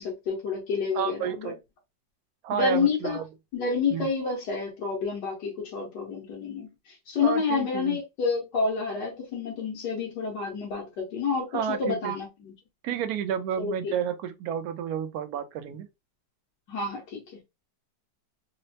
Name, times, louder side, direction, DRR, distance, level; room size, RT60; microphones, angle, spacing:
voice 1, 0.0-1.5 2.5-3.2 3.5-12.5 13.6-13.9 16.7-17.4, left 5 dB, 70° left, 1.7 m, -29 dB
voice 2, 0.9-1.6 2.4-3.2 3.9-4.1 7.2-8.0 11.5-12.1 12.8-15.9, right 9 dB, 70° right, 0.9 m, -31 dB
4.1 x 2.0 x 2.7 m
omnidirectional pair, 2.0 m